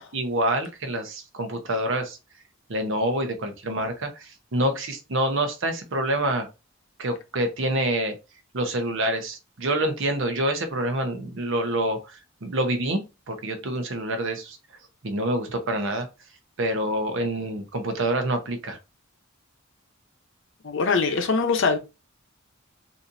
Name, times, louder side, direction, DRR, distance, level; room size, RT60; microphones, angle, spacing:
voice 1, 0.0-2.2 2.7-6.5 7.0-8.2 8.5-14.6 15.0-16.1 16.6-18.8, right 1 dB, 65° right, 0.8 m, -27 dB
voice 2, 20.6-21.8, left 4 dB, 65° left, 0.7 m, -22 dB
4.1 x 2.7 x 2.6 m
head